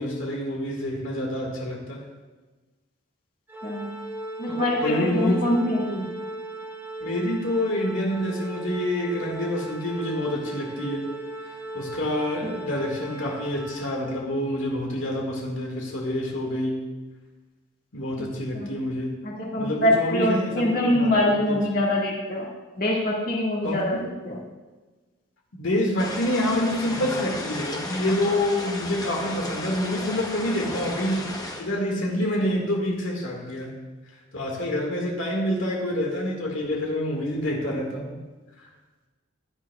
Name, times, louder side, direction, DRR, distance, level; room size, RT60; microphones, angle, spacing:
voice 1, 0.0-2.0 4.4-5.4 5.9-6.1 7.0-11.0 11.7-16.9 17.9-19.1 19.6-21.6 23.6-24.0 25.5-33.8 34.3-38.2 38.6-38.7, left 1 dB, 70° left, -1 dB, 1.9 m, -27 dB
Organ, 3.5-14.4, right 2 dB, 10° right, 0.8 m, -37 dB
voice 2, 4.4-5.9 12.4-12.5 18.2-18.3 18.5-18.7 19.2-22.5 22.8-24.4, left 1 dB, 45° left, -4 dB, 2.0 m, -24 dB
sound 1, 26.0-31.6, left 2 dB, 20° left, 1.0 m, -34 dB
15.5 x 10.5 x 2.4 m, 1.3 s
head